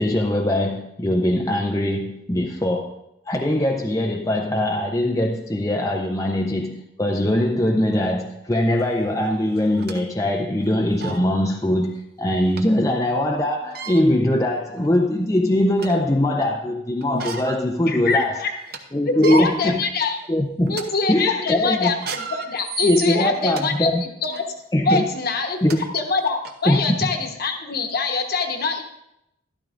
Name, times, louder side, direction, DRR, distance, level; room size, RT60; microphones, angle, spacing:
voice 1, 0.0-3.0 3.3-18.4 18.9-19.8 20.3-20.8 21.1-21.9 22.8-24.0 24.7-25.0 25.6-25.8 26.7-26.8, left 1 dB, 15° left, 1 dB, 0.5 m, -21 dB
sound 1, 8.8-8.9 9.6-10.0 10.6-10.7 11.0-11.2 12.6-12.7 13.6-14.0 14.8-14.9 15.4-16.1 17.0-17.6 18.1-18.2 18.5-18.8 19.1-19.4 20.1-20.3 20.7-20.8 21.9-23.6 24.3-24.5 25.3-25.4 25.7-25.8 26.4-26.5, right 6 dB, 50° right, 0.8 m, -33 dB
voice 2, 17.9-18.5 19.1-20.2 20.7-24.4 24.8-28.8, left 4 dB, 50° left, 4 dB, 1.1 m, -24 dB
12.5 x 12.0 x 2.5 m, 0.83 s
head